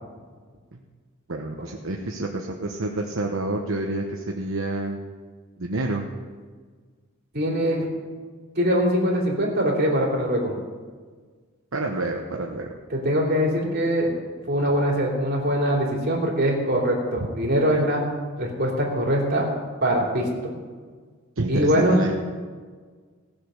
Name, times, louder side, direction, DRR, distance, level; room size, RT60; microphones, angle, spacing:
voice 1, 1.3-5.0 5.6-6.0 11.7-12.7 21.4-22.1, right 2 dB, 70° right, 1 dB, 1.0 m, -28 dB
voice 2, 7.3-7.9 8.5-10.5 12.9-14.1 14.5-18.0 18.4-19.5 19.8-20.5 21.5-22.0, equal, 45° right, -3 dB, 3.3 m, -22 dB
17.5 x 7.7 x 6.4 m, 1.5 s
head